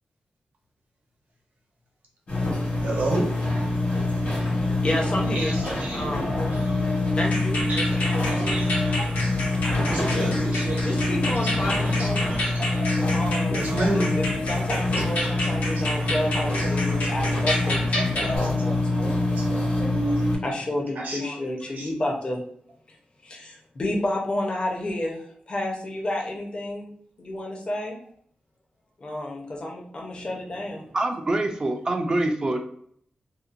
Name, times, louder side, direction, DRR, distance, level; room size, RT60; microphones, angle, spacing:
sound 1, 2.3-20.4, left 2 dB, 50° left, 1.1 m, -25 dB
voice 1, 2.8-3.3 5.2-6.1 6.5-6.8 7.7-8.0 8.3-9.1 9.8-11.0 11.3-12.7 13.5-14.2 15.0-16.1 16.3-16.5 16.9-17.1 17.6-17.8 18.2-18.3 18.7-19.0 19.4-19.5 20.0-20.2 20.9-21.4 21.7-21.9, right 2 dB, 75° right, -1 dB, 0.8 m, -33 dB
voice 2, 4.5-5.5 5.9-6.3 7.1-8.6 9.6-10.5 10.8-12.3 13.1-13.7 13.9-19.7 20.4-22.4 23.2-26.9 27.2-28.0 29.0-30.8, left 1 dB, 35° left, 0 dB, 0.6 m, -31 dB
sound 2, 7.3-18.4, left 1 dB, 80° left, 0.8 m, -31 dB
voice 3, 30.9-32.6, right 2 dB, 25° right, 4 dB, 0.3 m, -25 dB
2.7 x 2.1 x 2.4 m, 0.62 s
wide cardioid pair, 150°, 3 cm